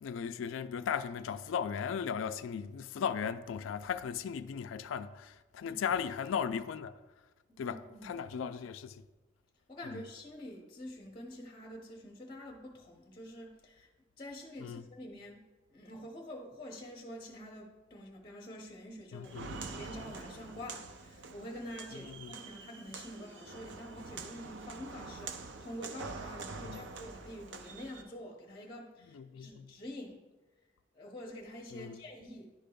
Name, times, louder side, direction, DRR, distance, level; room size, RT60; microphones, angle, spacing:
voice 1, 0.0-6.9 7.6-9.0 9.8-10.0 14.6-14.8 19.1-19.6 21.9-22.4 26.6-26.8 29.1-29.7 31.7-32.0, left 7 dB, 85° left, 0.3 m, -37 dB
voice 2, 7.5-8.2 9.7-13.9 14.2-15.4 15.7-30.2 30.9-32.5, left 1 dB, 25° left, 0.7 m, -47 dB
Walk footsteps, 19.2-28.0, right 4 dB, 70° right, 0.5 m, -45 dB
10.5 x 5.1 x 2.3 m
head